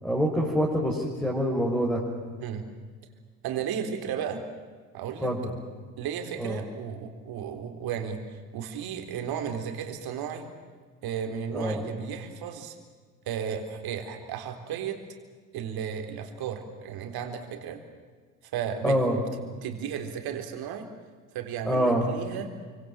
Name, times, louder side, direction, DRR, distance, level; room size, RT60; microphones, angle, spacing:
voice 1, 0.0-2.0 5.2-5.5 6.4-6.6 11.5-11.8 18.8-19.2 21.6-22.1, equal, 5° left, -2 dB, 6.0 m, -25 dB
voice 2, 3.4-4.4 4.9-5.3 6.0-10.5 11.0-12.7 13.3-15.0 15.5-17.8 18.5-19.0 19.6-20.9 21.3-22.5, right 8 dB, 55° right, 6 dB, 4.0 m, -34 dB
29.0 x 25.0 x 7.6 m, 1.5 s
hypercardioid pair, 60°, 44 cm